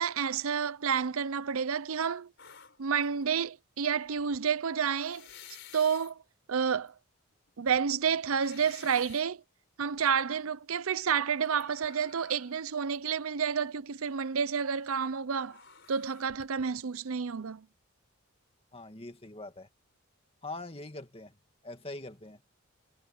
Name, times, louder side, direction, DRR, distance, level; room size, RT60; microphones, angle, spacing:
voice 1, 0.0-2.3 2.8-5.3 5.7-6.2 6.5-6.9 7.6-9.4 9.8-15.6 15.9-17.6, right 6 dB, 75° right, 0.6 m, -30 dB
sound 1, 2.4-3.2 4.0-4.4 5.0-6.1 6.9-7.0 7.5-9.3 9.8-10.2 11.4-12.6 12.9-13.0 15.4-16.8, left 8 dB, 55° left, 5.1 m, -53 dB
voice 2, 18.7-19.7 20.4-21.3 21.6-22.4, left 2 dB, 25° left, 2.2 m, -43 dB
head